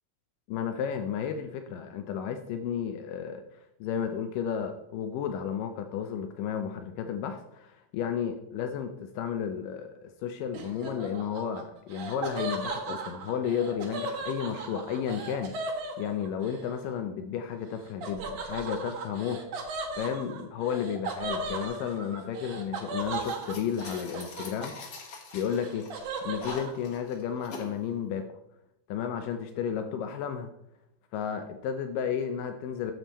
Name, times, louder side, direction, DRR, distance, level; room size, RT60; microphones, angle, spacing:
voice 1, 0.5-3.4 3.8-24.7 25.3-25.8 26.2-28.3 28.9-30.5 31.1-32.9, left 8 dB, 90° left, 7 dB, 1.9 m, -33 dB
Laughter, 10.5-16.6 18.0-25.0 25.3-26.7, right 3 dB, 60° right, 2.6 m, -37 dB
sound 1, 23.0-27.7, left 4 dB, 60° left, 1.5 m, -44 dB
9.4 x 7.0 x 4.1 m, 0.82 s
omnidirectional pair, 4.6 m